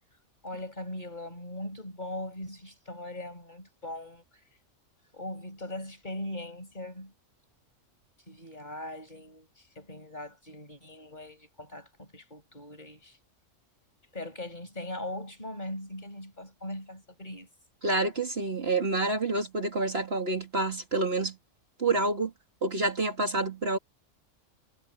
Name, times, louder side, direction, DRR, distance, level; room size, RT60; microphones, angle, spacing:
voice 1, 0.4-4.2 5.1-7.1 8.3-13.2 14.1-17.5, left 1 dB, 35° left, 6.1 m, -40 dB
voice 2, 17.8-21.4 21.8-22.3 22.6-23.8, right 2 dB, 50° right, 2.6 m, -28 dB
omnidirectional pair, 1.3 m